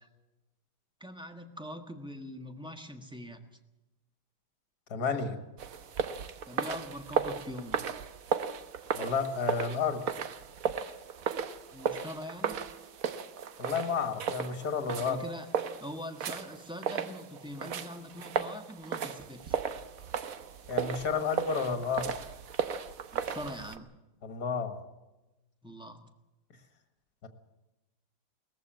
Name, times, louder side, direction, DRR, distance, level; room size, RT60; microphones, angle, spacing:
voice 1, 1.0-3.4 6.5-7.8 11.7-12.7 15.0-15.5 15.8-19.6 23.1-23.9 25.6-26.0, left 1 dB, 5° right, 6 dB, 1.1 m, -43 dB
voice 2, 4.9-5.4 8.9-10.0 13.6-15.2 20.7-22.1 24.2-24.7 27.2-27.3, left 5 dB, 50° left, 7 dB, 2.3 m, -31 dB
sound 1, 5.6-23.8, right 7 dB, 55° right, 1.1 m, -35 dB
20.0 x 14.5 x 9.0 m, 1.0 s
omnidirectional pair, 2.2 m